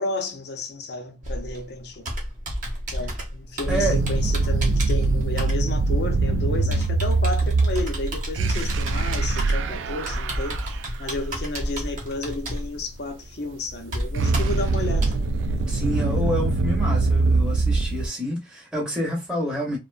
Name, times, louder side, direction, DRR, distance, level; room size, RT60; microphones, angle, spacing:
voice 1, 0.0-2.1 2.9-10.6 11.0-15.1, left 2 dB, 60° left, 0.5 m, -32 dB
Computer keyboard, 1.2-15.2, equal, 45° right, 0.8 m, -32 dB
sound 1, 3.7-10.8 13.7-18.1, right 3 dB, 85° right, 0.3 m, -23 dB
voice 2, 15.7-19.8, equal, 5° right, 0.7 m, -28 dB
2.5 x 2.1 x 2.4 m
head